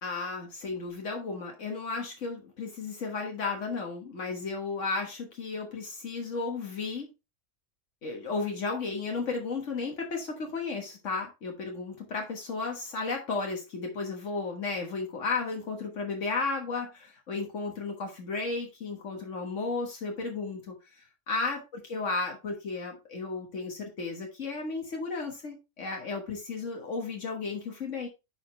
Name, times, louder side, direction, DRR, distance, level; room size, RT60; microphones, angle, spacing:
voice 1, 0.0-7.1 8.0-28.1, left 4 dB, 85° left, 1 dB, 1.8 m, -34 dB
10.0 x 5.0 x 3.2 m, 0.26 s
omnidirectional pair, 1.2 m